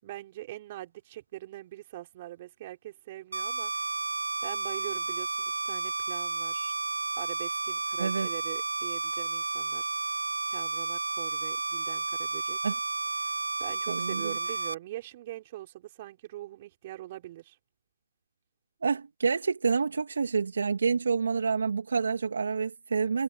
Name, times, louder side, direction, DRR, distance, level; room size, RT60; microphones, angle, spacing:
voice 1, 0.0-3.7 4.4-5.4 5.6-6.7 7.2-9.9 10.5-12.6 13.2-17.6, right 15 dB, 25° right, 5.1 m, -43 dB
sound 1, 3.3-14.7, right 3 dB, 85° right, 2.5 m, -32 dB
voice 2, 13.9-14.4 18.8-23.2, right 5 dB, 60° right, 2.9 m, -28 dB
hypercardioid pair, 165°, 0 cm